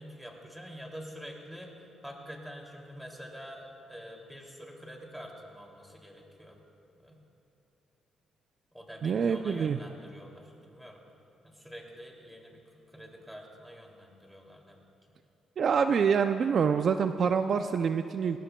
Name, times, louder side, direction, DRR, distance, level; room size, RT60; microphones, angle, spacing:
voice 1, 0.0-6.6 7.0-7.2 8.7-11.0 11.4-12.6 12.9-14.8, equal, 5° right, 0 dB, 2.6 m, -46 dB
voice 2, 9.0-9.8 15.6-18.4, right 6 dB, 55° right, 9 dB, 0.4 m, -26 dB
19.5 x 18.0 x 2.2 m, 2.9 s
cardioid pair, 90°, 0 cm